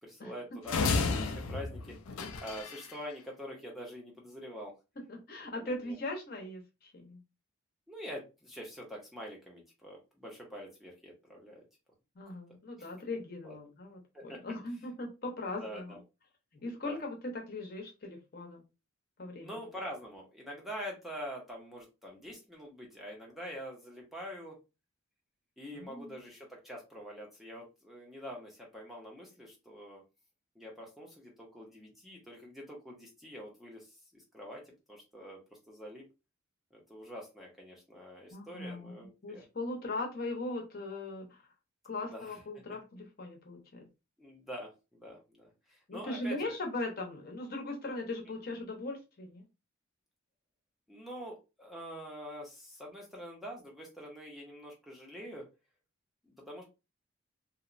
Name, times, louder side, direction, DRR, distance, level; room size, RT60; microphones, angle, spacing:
voice 1, 0.0-4.8 5.6-6.0 7.9-11.6 12.8-12.9 13.4-13.6 14.1-14.4 15.6-16.0 16.6-17.0 19.4-24.6 25.6-30.0 30.6-35.4 35.7-36.0 36.7-39.4 42.0-42.4 44.2-46.6 50.9-55.5 56.2-56.6, equal, ahead, -2 dB, 0.5 m, -45 dB
sound 1, 0.7-2.9, left 4 dB, 90° left, 0.4 m, -32 dB
voice 2, 5.1-7.2 12.2-16.0 16.6-18.6 19.2-19.6 25.7-26.1 38.3-38.9 39.2-41.4 41.8-43.8 45.9-49.4, left 2 dB, 45° left, 2 dB, 0.7 m, -39 dB
2.8 x 2.0 x 2.4 m, 0.27 s
head